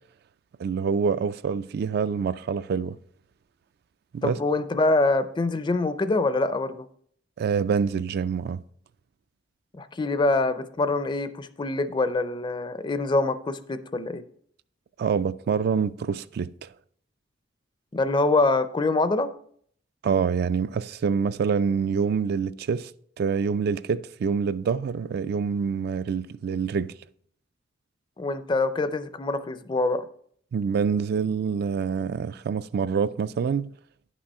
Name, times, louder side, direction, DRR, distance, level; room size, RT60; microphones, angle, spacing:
voice 1, 0.6-3.0 4.1-4.4 7.4-8.6 15.0-16.7 20.0-22.9 23.2-26.9 30.5-33.7, right 6 dB, 60° right, 0.3 m, -26 dB
voice 2, 4.2-6.9 9.7-14.2 17.9-19.3 28.2-30.0, left 2 dB, 25° left, 0.4 m, -25 dB
10.5 x 6.1 x 4.2 m
head